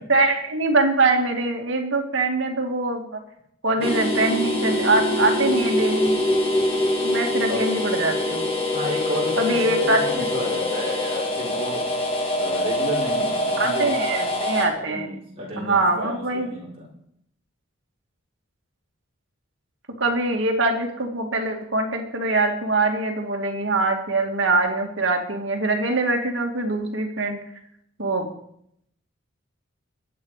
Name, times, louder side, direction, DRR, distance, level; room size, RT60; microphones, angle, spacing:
voice 1, 0.1-3.2 3.6-6.2 7.0-8.5 9.4-10.3 13.6-15.1 15.6-16.5 20.0-27.4 28.0-28.3, right 2 dB, 60° right, 3 dB, 2.3 m, -23 dB
sound 1, 3.8-14.6, left 1 dB, 25° left, 2.5 m, -24 dB
voice 2, 8.7-11.8 12.4-14.2 14.7-16.9, equal, 30° right, -3 dB, 4.9 m, -32 dB
22.0 x 8.7 x 5.0 m, 0.73 s
head